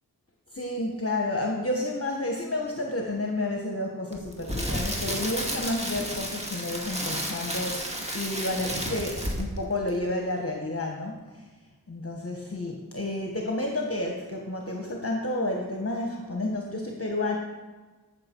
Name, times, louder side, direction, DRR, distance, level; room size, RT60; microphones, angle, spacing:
voice 1, 0.5-11.2 11.9-17.4, left 2 dB, 40° left, 0 dB, 1.2 m, -30 dB
Crackle, 4.1-9.6 9.9-10.1, equal, 15° right, 2.1 m, -32 dB
13.5 x 6.4 x 4.5 m, 1.3 s
wide cardioid pair, 45°, 37 cm